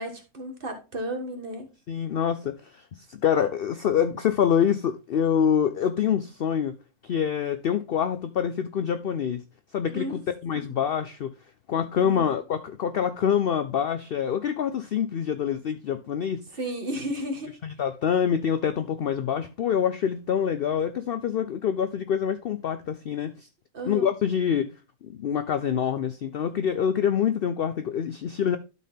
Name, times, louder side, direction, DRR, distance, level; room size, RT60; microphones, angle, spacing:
voice 1, 0.0-1.7 9.9-10.2 10.5-10.6 12.0-12.4 16.6-17.5 23.7-24.1, equal, 35° right, 1.6 m, -33 dB
voice 2, 1.9-6.8 7.0-9.4 9.7-11.3 11.7-16.4 17.6-23.5 23.9-24.7 25.0-28.6, left 8 dB, 75° left, 0.5 m, -26 dB
12.0 x 4.3 x 3.5 m
omnidirectional pair, 1.6 m